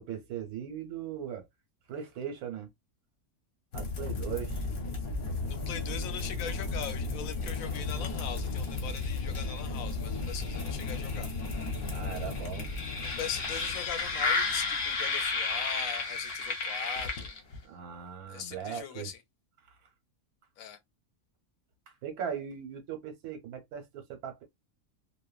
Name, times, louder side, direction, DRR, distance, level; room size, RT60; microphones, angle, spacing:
voice 1, 0.0-1.5 1.9-2.7 3.7-4.7 11.9-12.7 17.6-19.1 21.9-24.4, right 8 dB, 80° right, 1.3 m, -39 dB
sound 1, 3.7-17.6, left 3 dB, 45° left, 0.9 m, -33 dB
voice 2, 5.5-11.6 13.0-17.3 18.3-19.2 20.6-20.8, left 8 dB, 70° left, 1.0 m, -40 dB
2.9 x 2.2 x 2.3 m
omnidirectional pair, 1.5 m